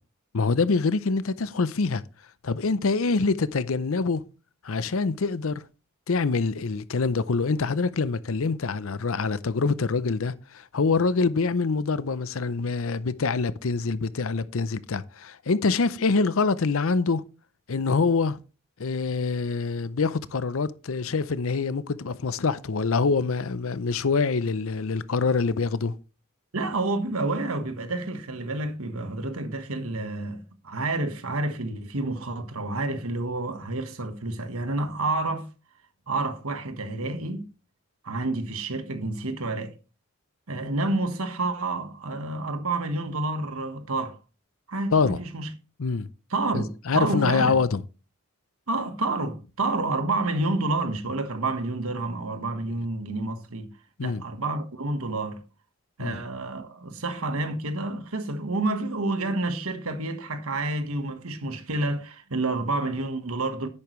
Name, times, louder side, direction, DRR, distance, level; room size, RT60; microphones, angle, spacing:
voice 1, 0.3-2.0 2.4-4.2 4.6-5.6 6.1-17.2 17.7-18.4 18.8-25.9 44.9-45.2 45.8-46.1 46.5-47.8 54.0-54.2 56.0-56.2, left 4 dB, 70° left, 0.6 m, -25 dB
voice 2, 26.5-35.5 36.1-37.5 38.0-39.7 40.5-44.2 44.7-45.5 46.3-47.6 48.7-53.7 54.0-55.4 56.0-63.7, right 2 dB, 75° right, 1.4 m, -29 dB
10.5 x 8.6 x 3.2 m
head